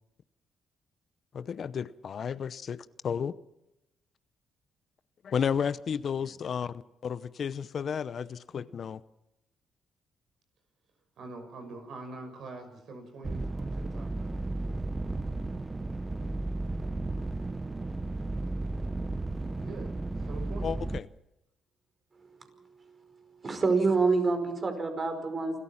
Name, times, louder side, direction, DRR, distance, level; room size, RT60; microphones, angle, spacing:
voice 1, 1.3-3.4 5.2-6.7 7.0-9.0 20.6-21.1, left 7 dB, 55° left, 0.8 m, -32 dB
voice 2, 6.2-6.5 11.2-14.1 19.6-20.8, right 3 dB, 65° right, 6.1 m, -44 dB
sound 1, 13.2-21.0, right 2 dB, 20° right, 0.8 m, -34 dB
voice 3, 23.4-25.6, right 4 dB, 35° right, 5.2 m, -26 dB
28.0 x 14.0 x 7.3 m
cardioid pair, 90°, 0 cm